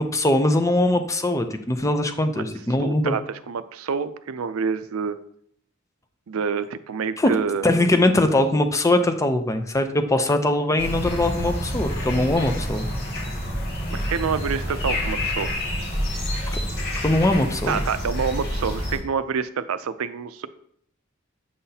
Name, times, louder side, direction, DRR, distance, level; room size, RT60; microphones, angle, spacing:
voice 1, 0.0-3.2 7.2-7.3 7.6-12.8 16.5-16.6 17.0-17.8, left 1 dB, 15° left, 7 dB, 0.5 m, -21 dB
voice 2, 2.8-5.2 6.3-7.7 13.9-15.5 17.7-20.5, right 6 dB, 75° right, 13 dB, 0.4 m, -27 dB
sound 1, 10.8-19.0, equal, 50° left, 2.0 m, -28 dB
7.7 x 5.7 x 2.8 m, 0.66 s
head